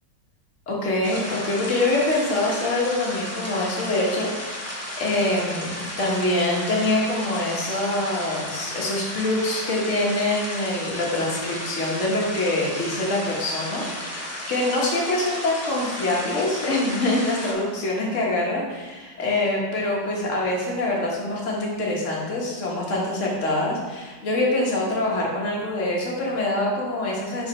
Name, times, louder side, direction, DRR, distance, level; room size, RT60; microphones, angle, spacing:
voice 1, 0.7-27.5, left 2 dB, 45° left, -3 dB, 1.5 m, -25 dB
sound 1, 1.0-17.5, left 1 dB, 20° left, 0.4 m, -34 dB
4.7 x 4.2 x 5.3 m, 1.4 s
omnidirectional pair, 2.0 m